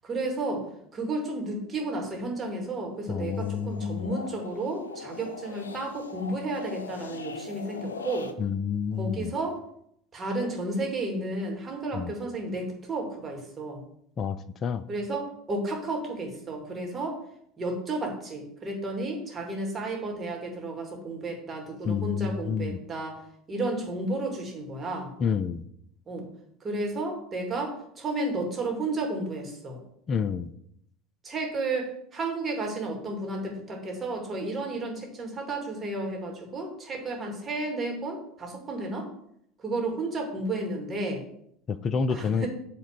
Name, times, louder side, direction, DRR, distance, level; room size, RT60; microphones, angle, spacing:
voice 1, 0.0-0.7 0.9-8.3 9.0-9.6 10.1-13.8 14.9-17.2 17.6-23.2 23.5-25.1 26.1-26.3 26.6-29.8 31.2-39.1 39.6-41.2 42.1-42.5, right 2 dB, 30° right, 1 dB, 2.7 m, -32 dB
sound 1, 3.1-8.3, left 4 dB, 85° left, 0.6 m, -41 dB
voice 2, 3.1-4.1 8.4-9.3 11.9-12.1 14.2-14.8 21.9-22.8 25.2-25.6 30.1-30.5 41.7-42.5, left 6 dB, 35° left, 13 dB, 0.5 m, -29 dB
8.6 x 3.8 x 6.7 m, 0.72 s
hypercardioid pair, 75°, 0 cm